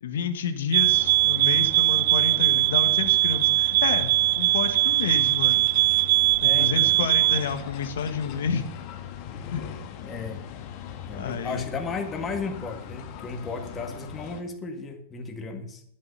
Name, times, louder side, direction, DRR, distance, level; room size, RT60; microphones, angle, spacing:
voice 1, 0.0-5.7 6.4-8.6 9.5-9.7 11.1-11.7, left 6 dB, 70° left, 9 dB, 1.7 m, -30 dB
sound 1, 0.7-7.5, right 18 dB, 55° right, 0.5 m, -21 dB
sound 2, 0.8-14.4, left 9 dB, 45° left, 1.7 m, -40 dB
voice 2, 6.4-6.9 10.0-10.4 11.1-15.8, left 4 dB, 20° left, 4 dB, 1.9 m, -34 dB
11.0 x 9.7 x 5.6 m, 0.72 s
hypercardioid pair, 110°, 0 cm